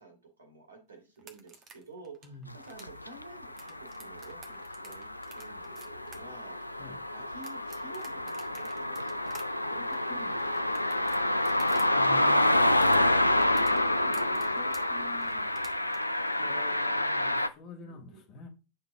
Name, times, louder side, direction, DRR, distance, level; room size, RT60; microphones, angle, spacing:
voice 1, 0.0-6.8 7.1-9.3 9.7-11.2 12.8-15.8 17.8-18.2, right 2 dB, 75° right, 2.1 m, -50 dB
sound 1, 1.2-11.9 12.1-16.0, right 5 dB, 30° right, 1.4 m, -52 dB
sound 2, 2.8-17.5, left 1 dB, 85° left, 0.4 m, -28 dB
voice 2, 11.9-12.7 16.4-18.5, left 3 dB, 35° left, 1.9 m, -47 dB
9.0 x 3.8 x 3.5 m
figure-of-eight pair, 90°, 0 cm